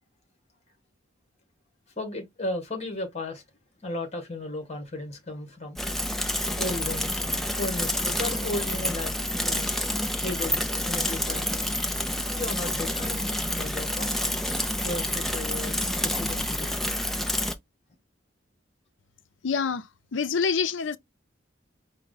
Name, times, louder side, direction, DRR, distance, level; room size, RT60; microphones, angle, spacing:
voice 1, 1.9-3.4 3.8-5.8 6.5-9.7 10.2-11.7 12.3-14.2 14.8-16.7, left 2 dB, 35° left, 1.5 m, -35 dB
Bicycle / Mechanisms, 5.8-17.5, left 1 dB, ahead, 0.4 m, -28 dB
voice 2, 19.4-21.0, left 5 dB, 85° left, 0.5 m, -27 dB
4.6 x 2.1 x 4.0 m
head